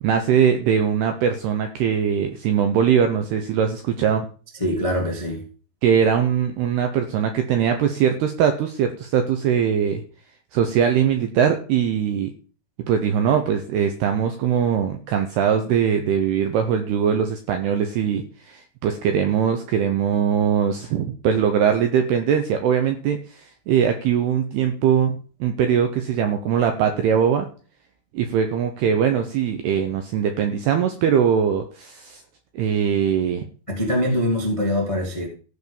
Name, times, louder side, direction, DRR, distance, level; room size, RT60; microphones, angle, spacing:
voice 1, 0.0-4.3 5.8-10.0 10.5-12.3 12.9-27.5 28.1-32.2 32.5-33.4, right 8 dB, 75° right, 6 dB, 2.4 m, -21 dB
voice 2, 4.6-5.4 33.7-35.3, left 1 dB, 30° left, 0 dB, 0.5 m, -23 dB
14.5 x 5.2 x 7.1 m, 0.39 s
omnidirectional pair, 5.9 m